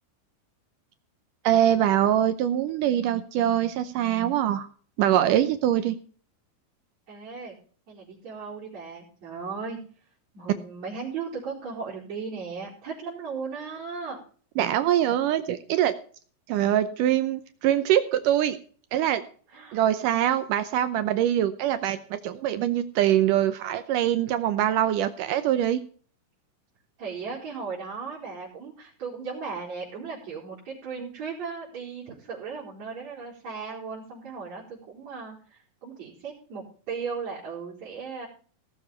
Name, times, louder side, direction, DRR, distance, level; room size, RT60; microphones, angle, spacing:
voice 1, 1.4-4.7 5.0-6.0 14.6-15.9 16.5-18.6 18.9-19.2 19.7-25.8, right 11 dB, 80° right, 11 dB, 2.3 m, -23 dB
voice 2, 7.1-7.6 7.9-9.8 10.3-14.2 19.5-19.8 27.0-38.3, right 5 dB, 50° right, -7 dB, 5.9 m, -36 dB
18.0 x 7.1 x 5.6 m, 0.44 s
omnidirectional pair, 4.0 m